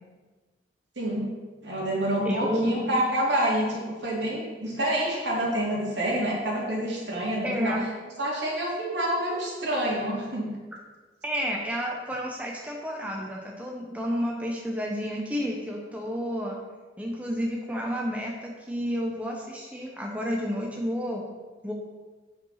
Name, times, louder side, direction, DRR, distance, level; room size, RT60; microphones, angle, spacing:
voice 1, 1.0-1.3 1.6-7.8 8.2-10.5, right 1 dB, 70° right, -4 dB, 2.8 m, -27 dB
voice 2, 2.2-3.0 7.4-7.8 11.2-16.6 17.0-21.3 21.6-21.7, equal, 5° right, -1 dB, 0.9 m, -30 dB
8.6 x 5.1 x 5.8 m, 1.3 s
head